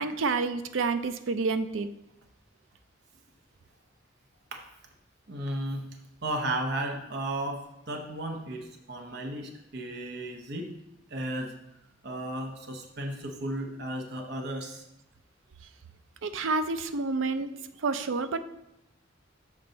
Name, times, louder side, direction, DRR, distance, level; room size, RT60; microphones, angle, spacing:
voice 1, 0.0-1.9 16.2-17.5 17.8-18.4, right 4 dB, 90° right, 11 dB, 0.5 m, -29 dB
voice 2, 5.3-5.9 6.2-10.7 11.1-11.5 12.0-14.8, right 1 dB, 55° right, 3 dB, 0.8 m, -34 dB
7.2 x 5.3 x 3.9 m, 0.88 s
head